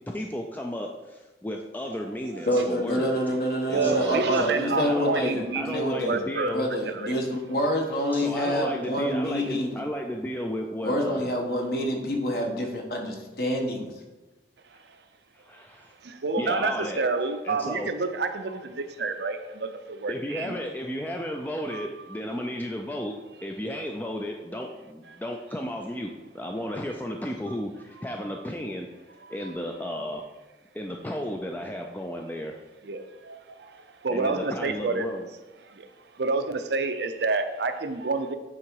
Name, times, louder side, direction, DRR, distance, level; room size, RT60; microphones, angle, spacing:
voice 1, 0.1-3.2 3.7-6.7 8.1-11.2 12.3-12.4 15.3-15.9 16.4-17.0 17.4-17.9 20.1-23.1 23.4-28.9 29.3-30.2 30.7-32.6 34.1-35.3, equal, 10° left, 2 dB, 0.4 m, -33 dB
voice 2, 2.5-6.1 6.5-9.8 10.8-13.9, equal, 55° left, 1 dB, 1.3 m, -27 dB
voice 3, 3.7-6.6 6.9-7.1 7.5-7.6 14.9-15.0 16.0-20.6 21.6-21.9 25.1-25.2 28.0-28.2 29.4-29.5 32.8-35.1 35.7-35.9 36.1-38.4, right 3 dB, 70° right, 8 dB, 0.6 m, -29 dB
8.8 x 3.7 x 4.7 m, 1.2 s
head